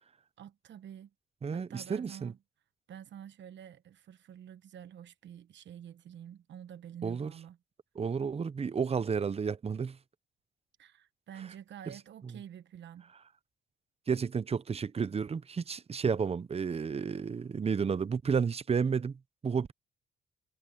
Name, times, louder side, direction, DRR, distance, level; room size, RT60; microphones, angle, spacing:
voice 1, 0.4-1.1 1.5-2.4 2.9-7.6 10.8-13.1, right 9 dB, 65° right, 1.1 m, -48 dB
voice 2, 1.4-2.3 7.0-7.3 8.0-10.0 14.1-19.7, right 6 dB, 30° right, 0.7 m, -31 dB
cardioid pair, 90°, 20 cm